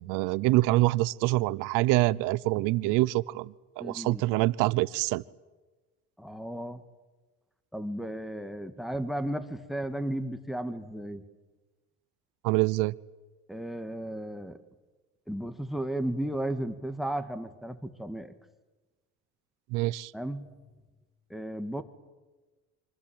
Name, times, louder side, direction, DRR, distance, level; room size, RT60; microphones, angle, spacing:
voice 1, 0.0-5.2 12.4-12.9 19.7-20.1, right 20 dB, 80° right, 20 dB, 0.8 m, -25 dB
voice 2, 3.8-4.2 6.2-6.8 7.7-11.2 13.5-14.6 15.3-18.3 20.1-20.5 21.3-21.8, right 1 dB, ahead, 10 dB, 1.9 m, -34 dB
27.0 x 24.5 x 8.9 m, 1.2 s
supercardioid pair, 105°, 31 cm